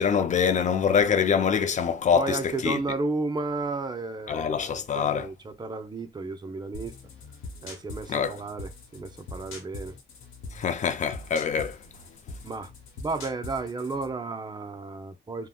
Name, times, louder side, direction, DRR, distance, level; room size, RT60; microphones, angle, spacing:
voice 1, 0.0-2.8 4.3-5.3 8.1-8.4 10.5-11.8, left 7 dB, 40° left, 0.4 m, -24 dB
voice 2, 2.1-6.9 7.6-10.0 12.4-12.7 13.0-15.5, right 3 dB, 20° right, 0.5 m, -33 dB
sound 1, 6.7-14.1, left 2 dB, 85° left, 1.0 m, -43 dB
3.5 x 2.1 x 2.2 m
cardioid pair, 90°, 20 cm